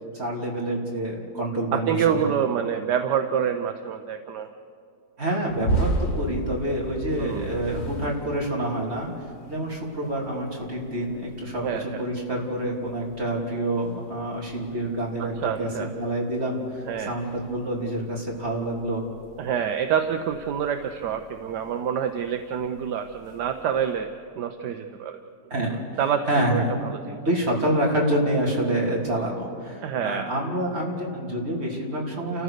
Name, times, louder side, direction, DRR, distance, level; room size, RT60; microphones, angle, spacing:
voice 1, 0.1-2.3 5.2-9.1 9.5-19.0 25.5-25.8 26.3-26.7 27.2-32.4, right 1 dB, 35° right, -2 dB, 3.6 m, -27 dB
voice 2, 1.7-4.5 7.2-7.5 11.6-12.0 15.2-15.9 16.9-17.1 19.4-24.1 24.4-25.2 25.7-26.2 26.5-27.2 29.8-30.3, right 8 dB, 75° right, 7 dB, 1.4 m, -27 dB
sound 1, 5.5-16.2 16.5-23.9, right 2 dB, 40° left, 1.8 m, -35 dB
30.0 x 14.5 x 6.6 m, 2.4 s
omnidirectional pair, 1.9 m